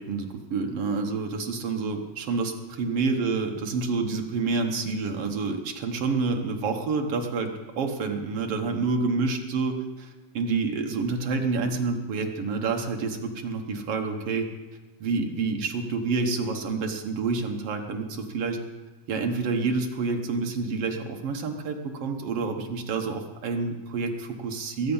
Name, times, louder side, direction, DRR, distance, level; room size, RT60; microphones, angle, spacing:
voice 1, 0.0-14.5 15.0-18.6 19.1-24.9, right 4 dB, 60° right, 3 dB, 1.8 m, -28 dB
21.5 x 8.5 x 5.5 m, 1.1 s
omnidirectional pair, 3.6 m